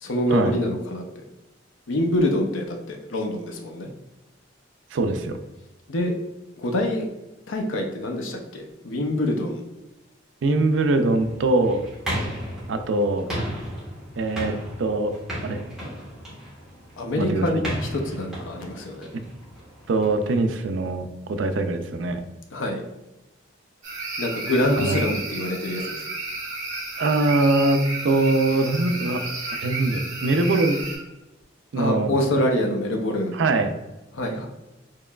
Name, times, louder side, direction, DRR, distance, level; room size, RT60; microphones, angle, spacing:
voice 1, 0.0-1.0 1.9-3.9 5.9-6.1 6.6-7.1 7.5-9.6 17.0-19.1 22.5-22.8 24.2-26.0 31.7-33.4 34.1-34.5, left 1 dB, 80° left, 3 dB, 0.5 m, -25 dB
voice 2, 4.9-5.4 10.4-11.8 12.7-13.3 14.2-15.1 15.4-15.6 17.2-17.5 19.9-22.2 24.8-25.0 27.0-29.2 29.6-30.8 31.7-32.1 33.3-33.8, right 2 dB, 70° right, 8 dB, 0.4 m, -22 dB
sound 1, 11.2-20.4, equal, 5° right, 1.3 m, -35 dB
sound 2, 23.8-31.0, right 2 dB, 40° right, 1.2 m, -32 dB
4.6 x 2.9 x 2.3 m, 1.0 s
head